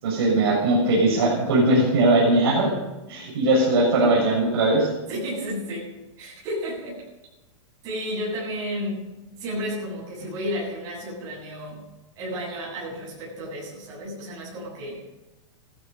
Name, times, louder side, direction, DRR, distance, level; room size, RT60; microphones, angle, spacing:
voice 1, 0.0-2.7 3.1-4.9, right 2 dB, 50° right, -3 dB, 6.5 m, -20 dB
voice 2, 5.1-5.9 6.2-7.0 7.8-9.0 9.3-11.8 12.2-15.0, equal, 20° right, -6 dB, 7.9 m, -32 dB
17.5 x 14.5 x 5.4 m, 1.0 s
supercardioid pair, 180°, 16 cm